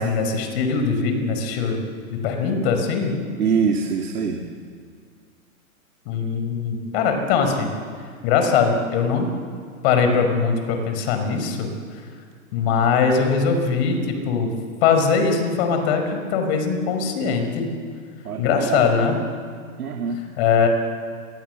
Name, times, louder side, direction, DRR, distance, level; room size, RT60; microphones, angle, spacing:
voice 1, 0.0-1.8 2.1-3.1 6.1-7.7 8.2-9.3 9.8-11.7 12.5-14.5 14.8-17.7 18.4-19.2 20.4-20.7, left 5 dB, 45° left, 5 dB, 5.2 m, -21 dB
voice 2, 3.4-4.5 18.2-18.9 19.8-20.2, right 6 dB, 90° right, 3 dB, 2.7 m, -24 dB
26.5 x 23.5 x 8.0 m, 2.1 s
hypercardioid pair, 140°, 43 cm